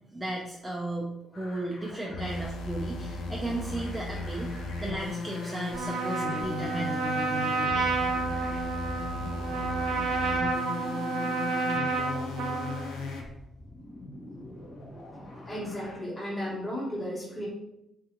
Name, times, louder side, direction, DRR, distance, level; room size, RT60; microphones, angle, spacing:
voice 1, 0.1-7.0, right 2 dB, 10° right, -2 dB, 0.4 m, -35 dB
sound 1, 1.3-16.0, left 1 dB, 50° left, 0.7 m, -46 dB
sound 2, 2.1-13.3, left 3 dB, 85° left, 0.3 m, -36 dB
Trumpet, 5.7-12.9, right 3 dB, 85° right, 0.4 m, -30 dB
voice 2, 15.5-17.4, equal, 20° left, -7 dB, 1.0 m, -34 dB
2.5 x 2.4 x 2.8 m, 0.84 s
cardioid pair, 90°, 0 cm